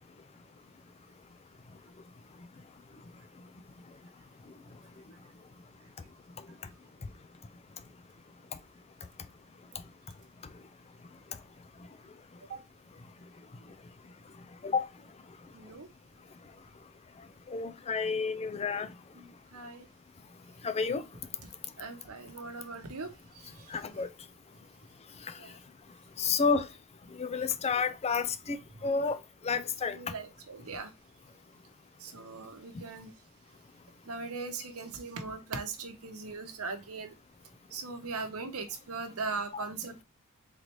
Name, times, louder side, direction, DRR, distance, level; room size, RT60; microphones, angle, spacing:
voice 1, 15.5-15.9 19.2-19.8 21.8-23.7 25.4-25.6 29.9-30.9 32.0-33.1 34.0-37.1 37.7-40.0, right 4 dB, 70° right, 0.8 m, -40 dB
voice 2, 17.5-18.9 20.6-21.0 23.7-24.1 26.2-26.7 27.2-28.6 28.8-29.2 29.4-30.0 39.5-39.6, left 5 dB, 30° left, 0.4 m, -30 dB
3.9 x 3.2 x 3.0 m
head